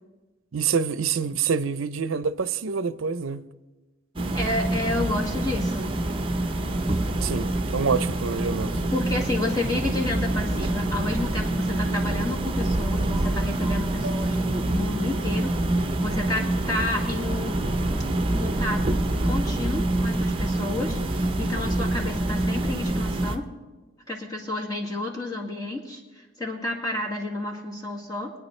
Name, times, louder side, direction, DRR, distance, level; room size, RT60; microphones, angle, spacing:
voice 1, 0.5-3.4 7.2-8.8 14.0-14.1, right 6 dB, 70° right, 0.5 m, -26 dB
sound 1, 4.2-23.4, right 1 dB, 25° right, 0.8 m, -26 dB
voice 2, 4.3-5.9 8.9-17.6 18.4-19.0 19.2-23.5 24.1-28.3, left 2 dB, 20° left, 1.9 m, -31 dB
24.0 x 9.4 x 3.2 m
head